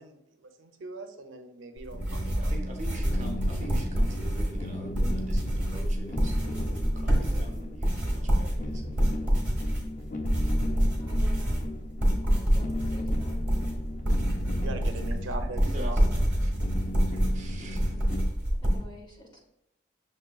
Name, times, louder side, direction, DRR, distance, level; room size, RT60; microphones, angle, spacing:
voice 1, 0.0-2.6 14.4-16.0 17.1-17.2, right 3 dB, 80° right, 5 dB, 0.5 m, -41 dB
sound 1, 1.8-18.8, equal, 5° right, 1.1 m, -27 dB
sound 2, 1.9-18.2, left 1 dB, 40° left, 0.4 m, -38 dB
voice 2, 2.4-8.9 15.6-16.5 17.3-18.1, right 1 dB, 35° right, 2 dB, 0.7 m, -44 dB
voice 3, 11.0-11.7 12.2-13.4 18.6-19.4, equal, 25° left, -1 dB, 0.8 m, -49 dB
6.5 x 3.1 x 2.3 m, 0.83 s
head